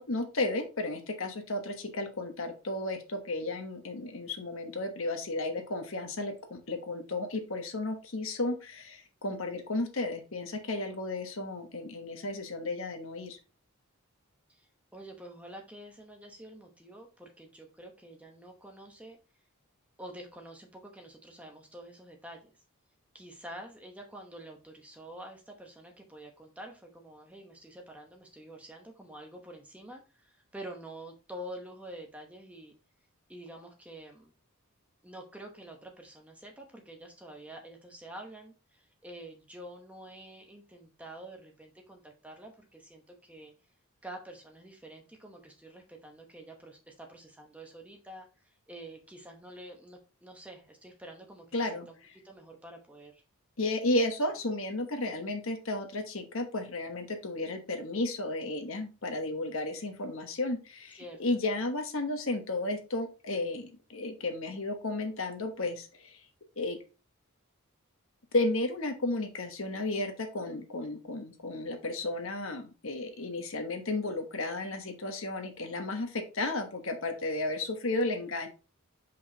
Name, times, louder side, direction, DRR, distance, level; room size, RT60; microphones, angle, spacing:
voice 1, 0.0-13.4 51.5-51.9 53.6-66.2 66.6-66.8 68.3-78.5, left 2 dB, 65° left, 5 dB, 1.2 m, -33 dB
voice 2, 14.5-19.2 20.0-22.5 23.1-32.8 33.3-34.3 35.0-43.5 44.0-51.4 51.7-52.0 52.2-53.2 60.9-61.2, right 1 dB, 5° right, 2 dB, 1.0 m, -47 dB
6.3 x 5.2 x 2.9 m, 0.32 s
head